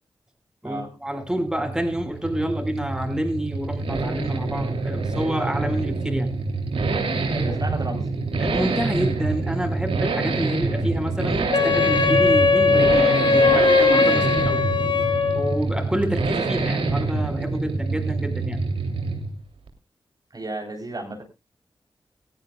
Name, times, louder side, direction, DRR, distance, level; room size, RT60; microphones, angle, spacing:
voice 1, 0.6-6.3 8.4-14.6 15.3-18.6, equal, 5° right, 4 dB, 5.0 m, -28 dB
Accelerating revving vroom, 1.2-19.4 19.7-19.8, right 3 dB, 85° right, 3.0 m, -26 dB
voice 2, 7.3-8.0 14.2-14.5 20.3-21.2, right 2 dB, 45° right, 3 dB, 3.8 m, -32 dB
Wind instrument woodwind instrument, 11.5-15.6, left 4 dB, 60° left, 2.5 m, -19 dB
19.5 x 14.5 x 2.3 m, 0.27 s
cardioid pair, 45°, 9 cm